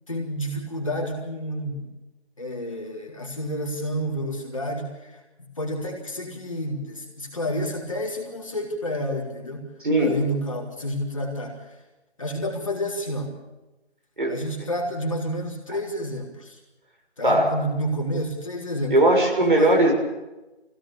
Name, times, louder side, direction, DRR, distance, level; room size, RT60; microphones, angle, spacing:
voice 1, 0.1-1.9 2.4-9.7 10.0-11.8 12.2-13.4 14.3-16.6 17.2-19.0 19.4-19.7, equal, 30° left, -2 dB, 3.7 m, -30 dB
voice 2, 18.9-19.9, right 1 dB, 50° right, 2 dB, 6.7 m, -18 dB
24.5 x 17.0 x 7.1 m, 1.0 s
figure-of-eight pair, 175°, 33 cm